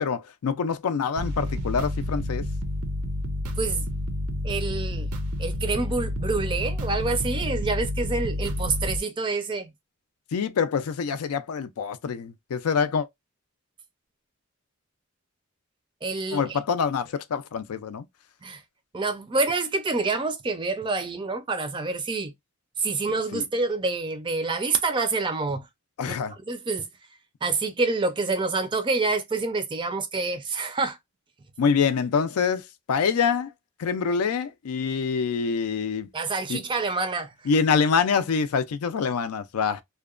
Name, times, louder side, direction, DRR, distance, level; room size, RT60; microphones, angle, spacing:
voice 1, 0.0-2.5 10.3-13.1 16.3-18.1 23.3-23.5 26.0-26.3 31.6-33.5 33.8-36.1 36.5-36.6 37.5-39.8, left 6 dB, 85° left, 0.4 m, -25 dB
sound 1, 1.2-9.0, left 1 dB, 80° right, 0.5 m, -29 dB
voice 2, 4.4-5.1 5.4-9.7 16.0-16.6 18.4-18.6 18.9-22.3 22.8-25.7 26.1-26.2 26.5-26.9 27.4-31.0 36.1-37.3, right 3 dB, 20° right, 0.4 m, -27 dB
2.8 x 2.1 x 2.3 m
head